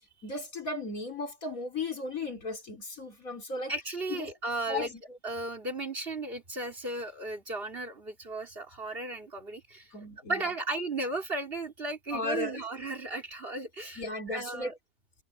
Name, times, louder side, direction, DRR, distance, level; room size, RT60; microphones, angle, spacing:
voice 1, 0.2-3.7 4.1-4.3 4.7-5.0 9.9-10.4 12.1-12.6 14.0-14.7, left 2 dB, 60° left, 4.3 m, -35 dB
voice 2, 3.7-4.9 5.2-9.9 10.3-14.7, right 2 dB, 35° right, 3.2 m, -35 dB
omnidirectional pair, 1.6 m